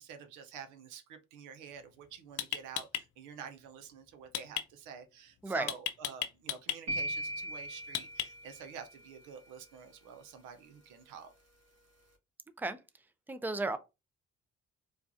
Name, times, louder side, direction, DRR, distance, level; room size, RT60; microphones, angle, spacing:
voice 1, 0.0-11.3, right 7 dB, 90° right, 0.7 m, -48 dB
sound 1, 1.8-1.9 2.4-3.0 4.3-4.6 5.7-6.8 7.9-8.5, left 11 dB, 75° left, 0.6 m, -34 dB
sound 2, 6.9-9.0, right 1 dB, 60° right, 1.4 m, -38 dB
voice 2, 13.3-13.8, right 2 dB, 5° right, 0.5 m, -33 dB
4.6 x 2.5 x 2.6 m
supercardioid pair, 70°, 30 cm